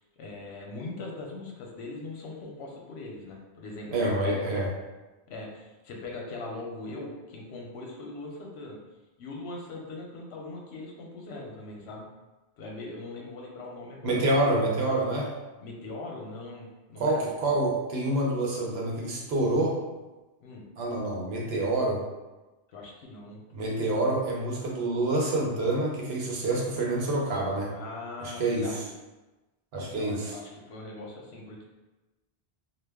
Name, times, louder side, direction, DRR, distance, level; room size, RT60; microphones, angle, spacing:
voice 1, 0.2-4.6 5.3-8.8 9.2-12.1 12.6-14.2 15.6-17.6 20.4-20.7 22.7-23.4 27.7-28.9 29.9-31.6, left 2 dB, 80° left, -1 dB, 0.9 m, -41 dB
voice 2, 3.9-4.7 14.0-15.3 17.0-19.8 20.8-22.0 23.5-27.7 28.2-28.8 29.7-30.3, right 2 dB, 75° right, -2 dB, 0.9 m, -27 dB
2.2 x 2.2 x 3.4 m, 1.1 s
omnidirectional pair, 1.1 m